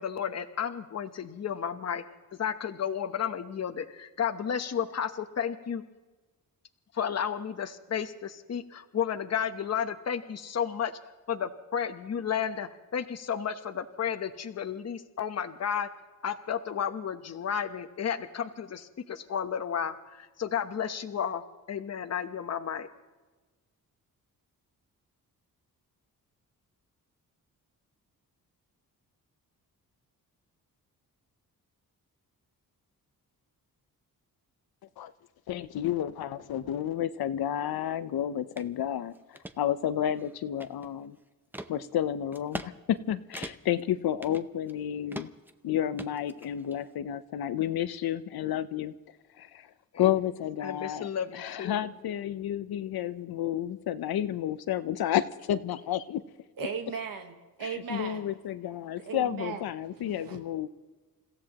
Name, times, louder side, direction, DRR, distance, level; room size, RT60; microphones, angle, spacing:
voice 1, 0.0-2.0 2.4-5.8 6.9-10.9 11.3-15.9 16.2-22.9 49.9-50.1 50.6-51.9, left 8 dB, 45° left, 8 dB, 1.0 m, -32 dB
voice 2, 35.5-41.2 41.7-45.3 45.6-48.9 49.4-49.7 50.0-56.2 57.6-60.7, left 11 dB, 85° left, 13 dB, 0.8 m, -31 dB
sound 1, 38.6-38.7 39.1-39.6 40.1-41.0 41.5-41.7 42.3-42.7 43.0-43.1 43.3-43.8 44.2-44.8 45.1-45.5 46.0-46.8, right 1 dB, 5° right, 0.6 m, -41 dB
voice 3, 56.6-58.3 59.0-59.7 59.9-60.4, right 6 dB, 70° right, 4 dB, 1.4 m, -37 dB
29.5 x 16.0 x 3.0 m, 1.3 s
wide cardioid pair, 120°, 36 cm